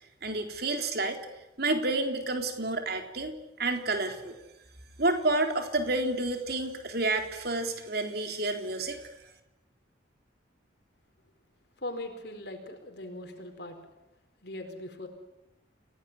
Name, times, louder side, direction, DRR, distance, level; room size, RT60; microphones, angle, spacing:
voice 1, 0.2-1.2 1.6-4.3 5.0-9.0, right 2 dB, 55° right, 5 dB, 3.8 m, -29 dB
voice 2, 11.8-13.8 14.4-15.1, left 1 dB, 60° left, 5 dB, 4.6 m, -40 dB
29.5 x 18.0 x 10.0 m, 0.97 s
head